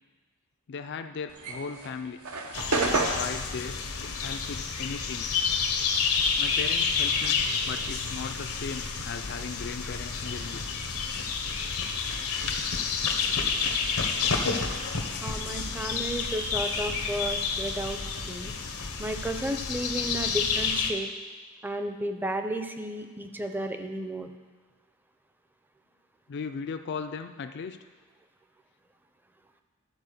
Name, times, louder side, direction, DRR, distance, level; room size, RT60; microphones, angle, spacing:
voice 1, 0.7-2.2 3.1-5.3 6.4-10.6 26.3-27.8, left 5 dB, 55° left, 7 dB, 0.4 m, -37 dB
sound 1, 1.3-6.0 6.3-8.3, right 3 dB, 80° right, 1.0 m, -31 dB
sound 2, 2.5-20.9, left 5 dB, 85° left, 1.0 m, -29 dB
voice 2, 15.2-18.5 19.0-21.1 21.6-24.3, right 1 dB, 10° right, 6 dB, 0.5 m, -33 dB
12.5 x 4.5 x 6.6 m, 1.3 s
head